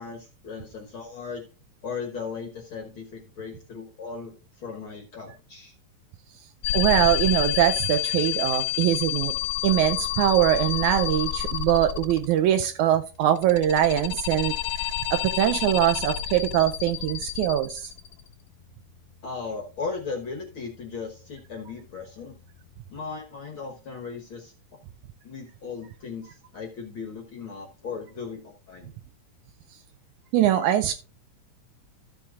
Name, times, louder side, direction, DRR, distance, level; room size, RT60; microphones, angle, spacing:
voice 1, 0.0-1.4 1.8-5.7 19.2-22.3 22.9-24.5 25.2-28.9, left 5 dB, 60° left, 1.4 m, -37 dB
sound 1, 6.6-12.5 13.3-18.3, left 13 dB, 85° left, 2.2 m, -29 dB
voice 2, 6.7-9.4 9.6-17.9 30.3-30.9, right 11 dB, 80° right, 1.8 m, -22 dB
14.0 x 7.0 x 2.4 m
omnidirectional pair, 3.8 m